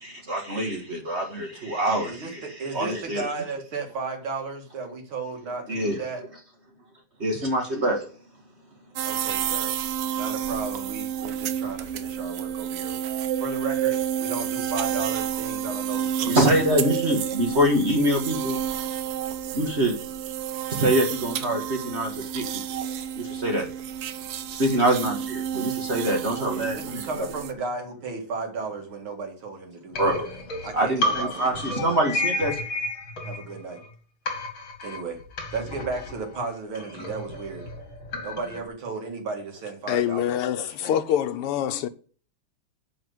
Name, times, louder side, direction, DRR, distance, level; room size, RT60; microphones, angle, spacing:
voice 1, 0.0-2.4 2.7-3.3 5.7-6.0 7.2-8.1 16.2-18.6 19.5-19.9 20.7-22.5 23.2-23.7 24.5-27.1 30.0-30.3 30.7-32.6, right 1 dB, 30° right, 1.7 m, -25 dB
voice 2, 2.0-6.2 9.0-9.7 10.1-16.9 26.5-30.1 30.6-32.1 33.2-33.8 34.8-35.2 35.5-37.6 38.2-41.0, right 4 dB, 70° right, 2.8 m, -35 dB
sound 1, 9.0-27.5, right 9 dB, 85° right, 1.8 m, -30 dB
sound 2, 29.9-33.9 34.3-38.7, left 1 dB, 65° left, 3.1 m, -32 dB
voice 3, 39.9-41.9, left 10 dB, 90° left, 1.7 m, -25 dB
9.4 x 5.1 x 7.9 m
omnidirectional pair, 2.4 m